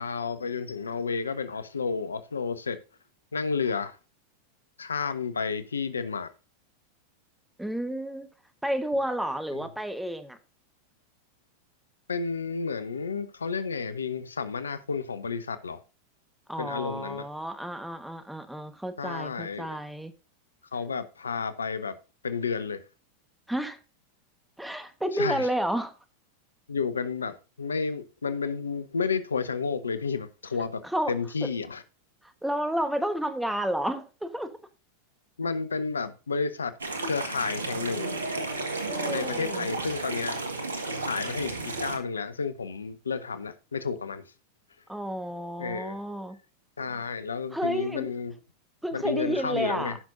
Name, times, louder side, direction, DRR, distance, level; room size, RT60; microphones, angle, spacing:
voice 1, 0.0-2.8 3.3-4.0 4.8-6.3 9.5-9.7 12.1-15.8 16.6-17.3 19.0-19.8 20.7-22.0 22.2-22.8 25.1-25.5 26.7-30.8 31.1-31.8 35.4-36.7 37.0-38.2 39.1-40.4 41.1-44.2 45.6-46.0 46.8-48.3 48.9-50.0, left 5 dB, 85° left, 0.8 m, -31 dB
voice 2, 7.6-8.3 8.6-10.4 16.5-20.1 23.5-23.8 24.6-25.9 30.9-31.1 31.4-31.5 32.4-34.5 38.9-39.7 44.9-46.4 47.5-48.1 48.8-49.9, right 1 dB, 5° right, 1.3 m, -31 dB
sound 1, 36.8-42.0, right 2 dB, 85° right, 1.5 m, -33 dB
15.5 x 6.0 x 2.6 m
hypercardioid pair, 90°, 0 cm